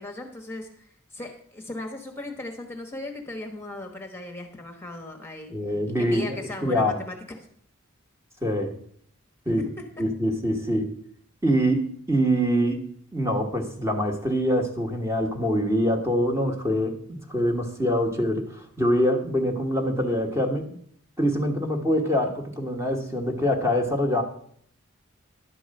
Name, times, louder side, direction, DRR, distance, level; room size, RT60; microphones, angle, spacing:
voice 1, 0.0-5.5 6.0-7.5 9.5-9.6, left 2 dB, 10° left, 4 dB, 1.1 m, -37 dB
voice 2, 5.5-7.0 8.4-8.8 9.5-9.6 10.0-10.9 11.4-20.8 21.2-24.2, equal, 15° right, 3 dB, 1.3 m, -24 dB
11.5 x 4.7 x 7.6 m, 0.63 s
head